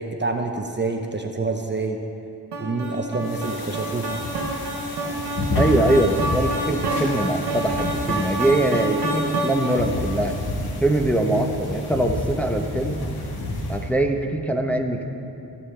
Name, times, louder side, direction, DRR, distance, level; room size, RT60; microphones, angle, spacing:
voice 1, 0.0-2.0 2.6-4.2, right 3 dB, 25° right, 3 dB, 0.8 m, -27 dB
sound 1, 2.5-9.9, right 1 dB, 80° right, 1.3 m, -28 dB
sound 2, 3.2-13.9, left 1 dB, 60° left, 1.4 m, -30 dB
voice 2, 5.6-10.4 10.8-13.0 13.7-15.1, right 1 dB, 5° left, 3 dB, 0.8 m, -22 dB
16.0 x 6.9 x 3.4 m, 2.7 s
cardioid pair, 50°, 41 cm